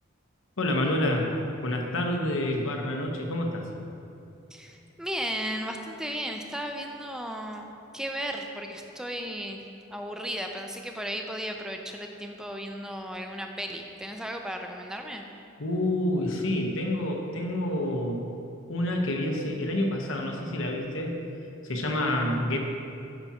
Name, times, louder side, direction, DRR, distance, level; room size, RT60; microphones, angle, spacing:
voice 1, 0.6-1.3 1.6-3.7 15.6-18.2 18.7-21.1 21.6-22.6, left 1 dB, 90° left, 1 dB, 1.0 m, -28 dB
voice 2, 4.5-7.7 7.9-9.6 9.9-15.2, equal, 5° right, 3 dB, 0.5 m, -35 dB
13.0 x 6.0 x 2.9 m, 2.7 s
head